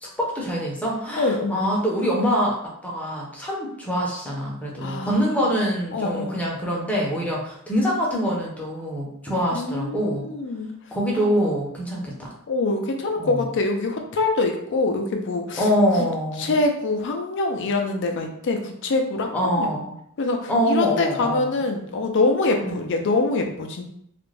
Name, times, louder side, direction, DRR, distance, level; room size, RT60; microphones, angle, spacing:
voice 1, 0.0-10.3 10.9-12.3 13.2-13.5 15.6-16.6 19.3-20.0 20.5-21.6 22.6-22.8, equal, 5° left, -3 dB, 0.6 m, -24 dB
voice 2, 1.2-1.7 4.8-5.4 5.9-6.4 9.5-10.7 12.5-15.7 16.4-19.8 20.2-23.8, left 3 dB, 55° left, 4 dB, 0.4 m, -24 dB
2.4 x 2.1 x 3.1 m, 0.72 s
head